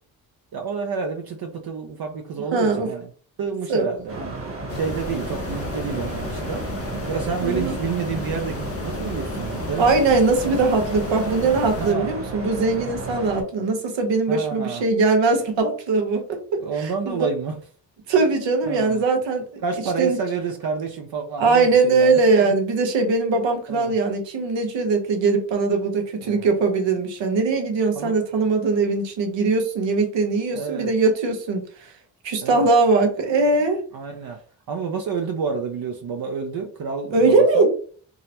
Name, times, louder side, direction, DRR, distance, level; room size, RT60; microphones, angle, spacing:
voice 1, 0.5-3.1 3.4-4.3 4.7-6.6 7.1-9.9 10.4-10.6 11.8-12.1 14.3-14.8 16.6-17.5 18.7-19.0 19.6-22.5 23.7-23.9 26.2-26.5 27.9-28.2 30.5-30.9 32.4-32.7 33.9-34.4 34.7-37.7, right 5 dB, 55° right, 2 dB, 0.7 m, -29 dB
voice 2, 2.5-2.9 3.7-3.9 7.4-7.7 9.8-17.3 18.1-19.6 20.0-20.2 21.4-31.9 32.2-33.8 37.1-37.7, right 3 dB, 75° right, 3 dB, 1.1 m, -21 dB
sound 1, 4.1-13.4, right 2 dB, 30° right, 1.2 m, -33 dB
sound 2, 4.7-11.9, left 4 dB, 35° left, 0.5 m, -34 dB
3.7 x 2.1 x 2.9 m, 0.43 s
supercardioid pair, 60°, 45 cm